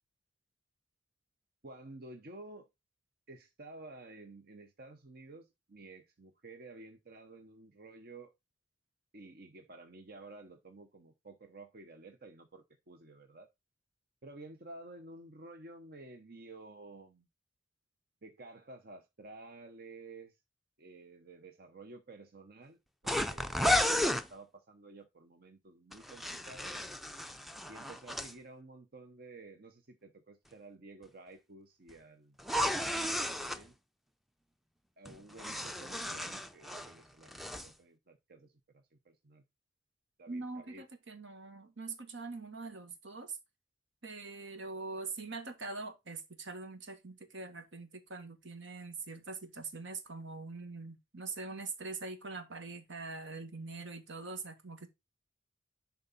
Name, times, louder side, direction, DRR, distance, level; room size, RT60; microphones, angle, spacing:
voice 1, 1.6-2.7 3.3-8.3 9.1-13.5 14.2-17.3 18.2-20.4 20.8-26.8 27.7-33.8 35.0-39.4 40.2-40.8, right 2 dB, 55° right, 0.9 m, -52 dB
sound 1, 23.1-24.3 25.9-28.3 32.4-33.6 35.1-36.9 37.2-37.7, left 1 dB, ahead, 0.5 m, -33 dB
voice 2, 40.3-43.4 44.0-54.9, right 3 dB, 75° right, 1.6 m, -43 dB
10.5 x 4.0 x 4.2 m
head